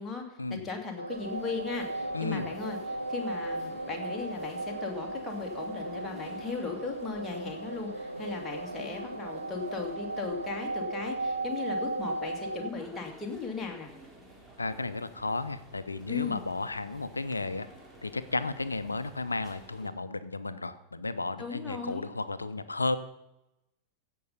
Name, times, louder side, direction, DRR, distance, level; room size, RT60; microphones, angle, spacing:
voice 1, 0.5-13.9 16.1-16.4 21.4-22.1, left 4 dB, 15° left, 0 dB, 2.3 m, -37 dB
sound 1, 1.0-12.7, right 2 dB, 85° right, 0.5 m, -36 dB
sound 2, 1.1-19.9, right 1 dB, 10° right, 2.7 m, -53 dB
voice 2, 2.1-2.5 14.6-17.7 18.0-23.0, left 3 dB, 80° left, 13 dB, 0.6 m, -33 dB
16.0 x 5.5 x 5.4 m, 0.92 s
figure-of-eight pair, 90°, 0 cm